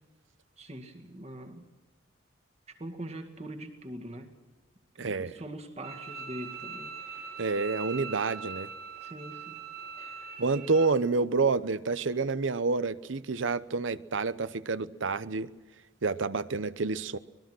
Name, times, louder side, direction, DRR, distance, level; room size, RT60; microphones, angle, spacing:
voice 1, 0.6-1.7 2.7-4.3 4.9-7.4 9.0-9.7 10.0-10.3, right 1 dB, 35° right, 2.1 m, -43 dB
voice 2, 5.0-5.4 7.4-8.7 10.4-15.5 16.0-17.2, right 4 dB, 80° right, 0.8 m, -28 dB
Bowed string instrument, 5.8-10.9, right 6 dB, 50° right, 2.6 m, -41 dB
24.5 x 20.5 x 6.2 m
head